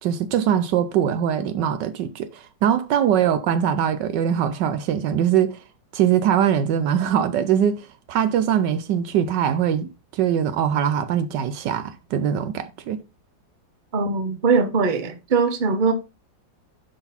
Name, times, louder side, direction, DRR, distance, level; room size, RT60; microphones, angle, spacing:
voice 1, 0.0-5.6 5.9-13.0, right 9 dB, 75° right, 1.2 m, -22 dB
voice 2, 13.9-15.9, right 4 dB, 35° right, 0.9 m, -21 dB
10.5 x 3.9 x 4.2 m
omnidirectional pair, 2.1 m